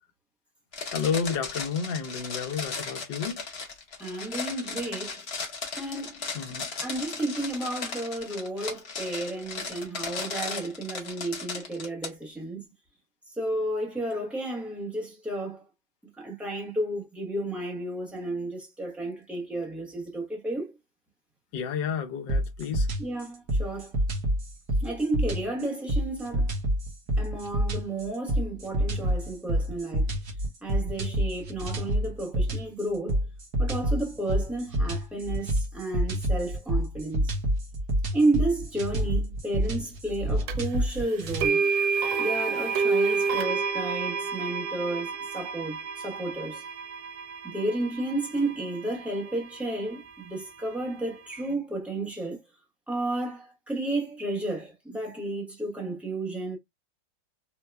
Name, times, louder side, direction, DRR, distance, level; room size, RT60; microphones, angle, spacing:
sound 1, 0.7-12.1, left 4 dB, 45° left, 0.9 m, -36 dB
voice 1, 0.9-3.4 6.3-6.6 21.5-22.9, left 6 dB, 75° left, 1.4 m, -31 dB
voice 2, 4.0-5.2 5.8-6.2 6.8-12.7 13.4-15.6 16.2-20.7 23.0-24.0 24.8-26.5 27.2-30.1 30.6-33.2 33.6-37.3 38.1-41.7 42.2-46.6 47.4-52.4 52.9-56.6, right 2 dB, ahead, 0.7 m, -32 dB
sound 2, 22.3-41.5, right 1 dB, 60° right, 1.5 m, -28 dB
sound 3, 40.5-40.6 41.4-49.4, right 5 dB, 75° right, 1.3 m, -29 dB
4.6 x 2.2 x 2.2 m
omnidirectional pair, 2.0 m